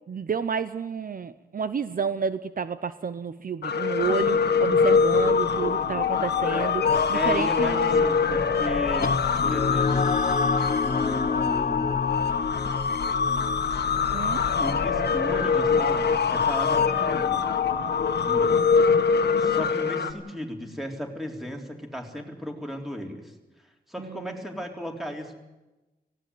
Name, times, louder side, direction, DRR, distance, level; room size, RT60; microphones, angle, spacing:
voice 1, 0.1-8.1 14.1-14.5 24.0-24.3, right 6 dB, 55° right, 13 dB, 0.8 m, -30 dB
sound 1, 3.6-20.1, left 5 dB, 90° left, 1.6 m, -24 dB
voice 2, 7.1-10.2 10.8-12.0 14.6-17.4 18.2-18.5 19.4-23.3 23.9-25.3, equal, ahead, 2 dB, 3.8 m, -35 dB
sound 2, 9.0-17.9, left 4 dB, 50° left, 1.3 m, -30 dB
18.0 x 17.0 x 9.4 m, 1.0 s
wide cardioid pair, 105°, 17 cm